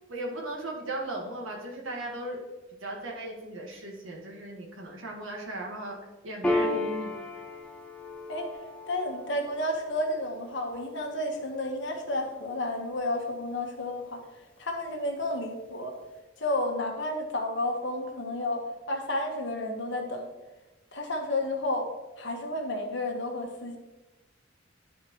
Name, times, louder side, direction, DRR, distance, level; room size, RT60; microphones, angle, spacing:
voice 1, 0.1-2.4 2.8-6.0 6.2-7.2, right 1 dB, 85° right, -1 dB, 1.7 m, -37 dB
Piano, 6.4-13.4, left 1 dB, 5° left, 0.6 m, -35 dB
voice 2, 8.9-14.2 14.6-15.9 16.4-20.3 20.9-21.9 22.2-23.8, left 1 dB, 60° left, 2 dB, 1.3 m, -31 dB
11.5 x 4.6 x 3.1 m, 1.1 s
head